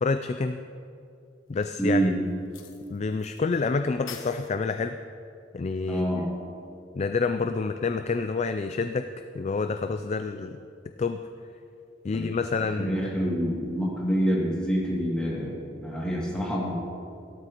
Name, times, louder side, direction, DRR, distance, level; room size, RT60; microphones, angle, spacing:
voice 1, 0.0-0.6 1.5-2.1 2.9-5.0 5.5-6.1 7.0-9.1 9.3-10.6 11.0-11.2 12.0-13.3, left 4 dB, 35° left, 8 dB, 0.3 m, -28 dB
sound 1, 1.6-1.7 2.5-3.4 3.6-3.7 4.1-4.5, left 6 dB, 80° left, 1.0 m, -42 dB
voice 2, 1.8-2.2 5.9-6.3 12.1-12.3 12.8-16.7, right 1 dB, 5° left, -6 dB, 2.4 m, -27 dB
16.0 x 13.0 x 3.0 m, 2.5 s
head